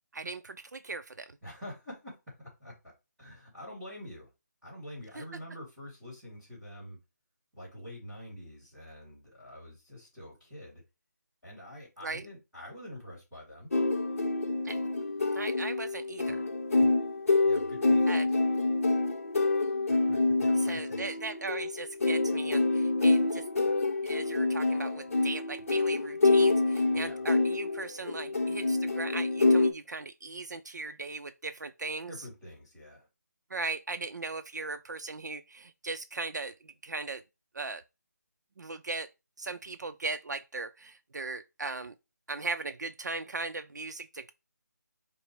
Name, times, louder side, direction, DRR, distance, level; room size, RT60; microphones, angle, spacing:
voice 1, 0.1-1.3 5.2-5.3 12.0-12.2 14.6-14.8 15.3-16.4 18.1-18.3 20.5-23.4 24.0-32.1 33.5-37.2 37.5-37.8 38.6-39.1 39.4-41.9 42.3-44.3, right 3 dB, 75° right, 0.5 m, -38 dB
voice 2, 1.4-4.3 4.6-7.0 7.5-10.8 11.4-13.7 17.4-18.2 19.9-21.2 26.9-27.3 32.1-33.1, left 1 dB, ahead, 2.2 m, -46 dB
sound 1, 13.7-29.7, left 3 dB, 50° left, 0.8 m, -27 dB
5.0 x 2.1 x 4.5 m
figure-of-eight pair, 180°, 10 cm